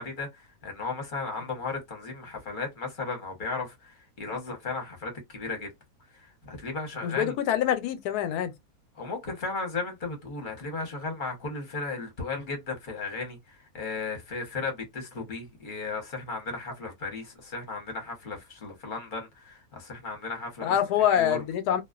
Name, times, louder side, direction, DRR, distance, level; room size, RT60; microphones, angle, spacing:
voice 1, 0.0-5.7 6.1-7.3 9.0-20.8 21.1-21.4, left 3 dB, 40° left, 0.9 m, -35 dB
voice 2, 7.0-8.5 20.6-21.8, left 10 dB, 90° left, 1.1 m, -25 dB
2.4 x 2.3 x 2.3 m
omnidirectional pair, 1.6 m